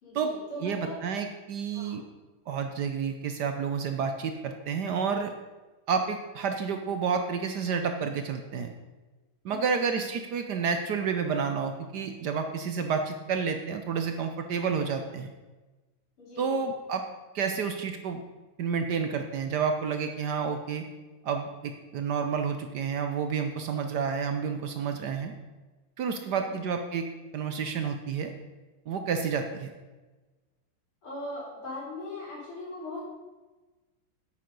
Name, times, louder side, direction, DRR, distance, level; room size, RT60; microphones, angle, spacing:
voice 1, 0.0-1.0 1.7-2.0 9.5-9.8 16.2-16.6 26.2-26.5 31.0-33.0, left 1 dB, 90° left, -5 dB, 4.6 m, -40 dB
voice 2, 0.6-2.0 2.5-5.3 5.9-8.7 9.4-15.3 16.4-17.0 17.3-18.2 18.6-20.9 21.2-25.3 26.0-27.1 27.3-28.3 28.9-29.7, right 6 dB, 65° right, 6 dB, 1.1 m, -30 dB
8.6 x 8.5 x 5.3 m, 1.2 s
omnidirectional pair, 2.3 m